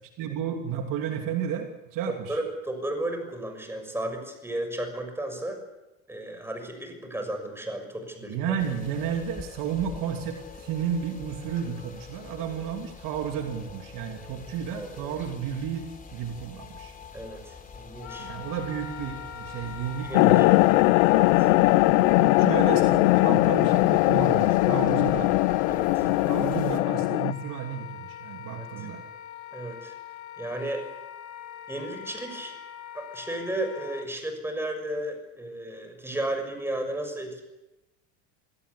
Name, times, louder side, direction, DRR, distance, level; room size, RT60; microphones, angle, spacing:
voice 1, 0.2-2.4 8.3-16.9 18.2-21.0 21.7-25.3 26.0-29.0, right 8 dB, 55° right, 4 dB, 2.9 m, -32 dB
voice 2, 2.1-5.6 6.1-8.6 14.7-15.2 17.1-18.3 20.1-20.5 21.1-21.5 25.7-26.1 28.5-28.6 29.5-29.9 30.4-30.8 31.7-32.5 32.9-37.4, right 1 dB, 5° right, 5 dB, 6.4 m, -34 dB
sound 1, 8.6-26.8, left 5 dB, 20° left, 3.6 m, -45 dB
Wind instrument woodwind instrument, 18.0-34.1, left 9 dB, 45° left, 2.1 m, -43 dB
sound 2, 20.1-27.3, left 20 dB, 80° left, 0.9 m, -20 dB
26.5 x 17.5 x 8.5 m, 0.98 s
supercardioid pair, 130°, 39 cm